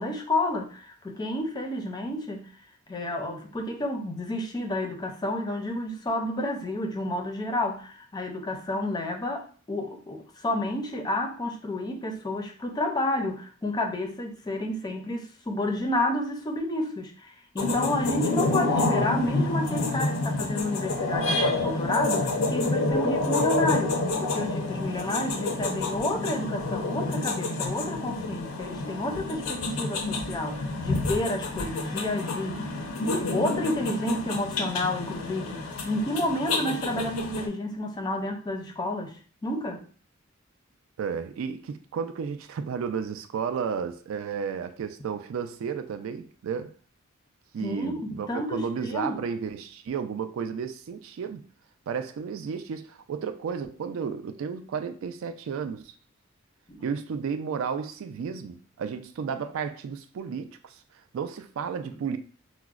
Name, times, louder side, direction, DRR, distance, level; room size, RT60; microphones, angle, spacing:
voice 1, 0.0-2.5 2.9-32.7 33.1-39.1 39.4-39.8 47.6-49.2 56.7-56.8, left 1 dB, 20° left, 0.4 m, -30 dB
sound 1, 17.6-37.5, left 2 dB, 90° left, 0.6 m, -28 dB
voice 2, 41.0-46.7 47.5-51.4 51.9-55.9 56.8-60.8 61.1-62.2, right 6 dB, 70° right, 0.3 m, -33 dB
4.7 x 2.0 x 2.3 m
head